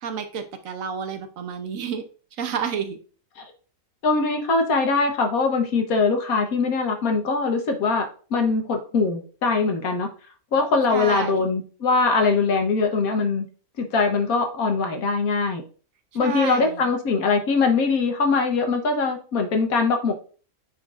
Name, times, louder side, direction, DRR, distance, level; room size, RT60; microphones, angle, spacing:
voice 1, 0.0-2.0 2.4-3.0 10.9-11.5 16.2-16.9, right 7 dB, 70° right, 8 dB, 1.2 m, -30 dB
voice 2, 4.0-10.1 10.5-13.5 13.8-15.6 16.1-20.1, left 4 dB, 80° left, 5 dB, 1.5 m, -22 dB
8.9 x 4.3 x 2.5 m, 0.39 s
omnidirectional pair, 1.5 m